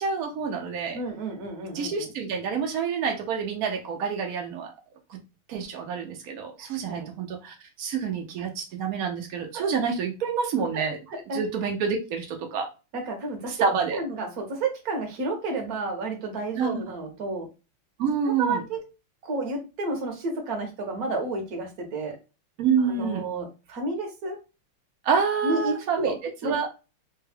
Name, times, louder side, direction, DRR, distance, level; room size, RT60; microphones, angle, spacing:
voice 1, 0.0-1.0 1.7-4.7 5.1-5.2 5.5-11.0 11.3-12.7 13.5-14.0 16.5-16.8 18.0-18.6 22.6-23.3 25.0-26.1 26.4-26.7, right 6 dB, 85° right, 2 dB, 0.8 m, -27 dB
voice 2, 0.9-2.1 6.8-7.1 9.5-9.7 10.7-10.8 11.1-11.4 12.9-17.5 18.3-18.8 19.2-22.2 22.8-24.4 25.4-26.7, right 3 dB, 55° right, 3 dB, 1.2 m, -31 dB
3.5 x 2.3 x 3.3 m, 0.30 s
omnidirectional pair, 2.4 m